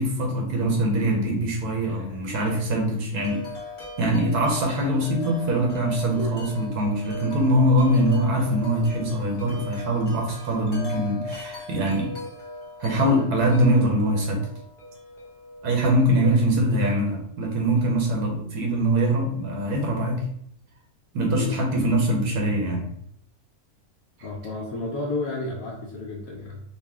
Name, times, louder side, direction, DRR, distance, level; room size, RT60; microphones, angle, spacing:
voice 1, 0.0-3.4 4.0-12.1 12.8-14.5 15.6-20.3 21.1-22.9, right 1 dB, 80° right, 0 dB, 1.4 m, -23 dB
Wind chime, 3.1-17.1, left 3 dB, 35° left, 0.9 m, -39 dB
voice 2, 24.2-26.6, left 2 dB, 70° left, -2 dB, 1.1 m, -32 dB
4.1 x 2.3 x 3.5 m, 0.67 s
omnidirectional pair, 1.6 m